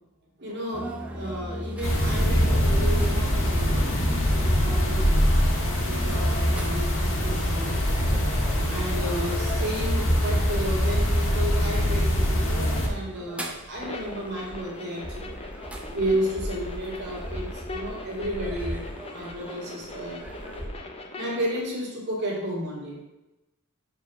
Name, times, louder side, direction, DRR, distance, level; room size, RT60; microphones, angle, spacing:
voice 1, 0.4-7.8 8.7-15.4 15.9-18.8 19.1-20.7 21.2-23.0, equal, 55° right, -3 dB, 2.1 m, -33 dB
sound 1, 0.7-20.7, equal, 5° right, 0.7 m, -39 dB
sound 2, 1.8-12.9, equal, 70° left, 1.6 m, -23 dB
sound 3, 13.8-21.6, left 2 dB, 30° left, 0.7 m, -41 dB
5.0 x 4.5 x 5.7 m, 0.97 s
head